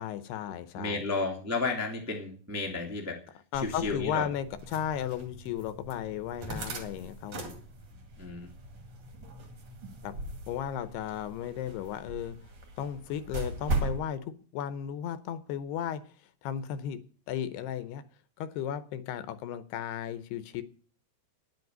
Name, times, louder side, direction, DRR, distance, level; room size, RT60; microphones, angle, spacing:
voice 1, 0.0-1.0 3.5-7.6 10.0-10.1 10.5-12.4 12.8-16.0 16.4-17.0 17.3-18.0 18.4-20.6, left 9 dB, 80° left, 2.8 m, -35 dB
voice 2, 0.7-3.2 3.6-4.2 8.2-8.5, left 3 dB, 10° right, 0.8 m, -32 dB
sound 1, 3.5-14.0, right 3 dB, 45° right, 2.9 m, -39 dB
10.0 x 8.0 x 9.2 m
omnidirectional pair, 4.8 m